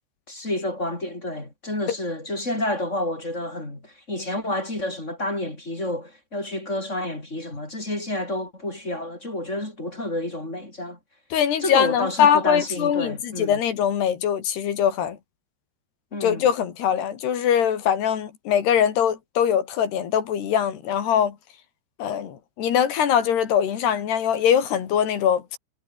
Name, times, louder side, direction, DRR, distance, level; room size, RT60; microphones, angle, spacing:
voice 1, 0.3-11.0 11.6-13.6 16.1-16.5, left 1 dB, 15° left, 5.4 m, -29 dB
voice 2, 11.3-15.2 16.2-21.3 22.0-25.6, left 9 dB, 70° left, 4.5 m, -22 dB
omnidirectional pair, 5.1 m